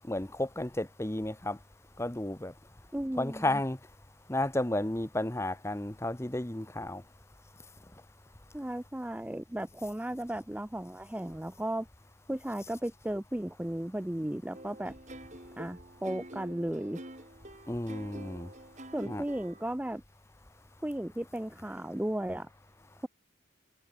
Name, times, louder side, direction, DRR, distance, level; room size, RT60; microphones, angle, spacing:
voice 1, 0.1-1.6 2.0-2.5 3.2-3.8 4.3-7.0 17.7-18.5 19.1-19.2, left 1 dB, 15° left, 0.9 m, -32 dB
voice 2, 2.9-3.6 8.5-11.9 12.3-14.9 15.6-17.0 18.9-20.0 20.8-22.5, right 1 dB, 5° right, 0.4 m, -35 dB
sound 1, 14.5-19.6, right 1 dB, 35° right, 5.7 m, -47 dB
head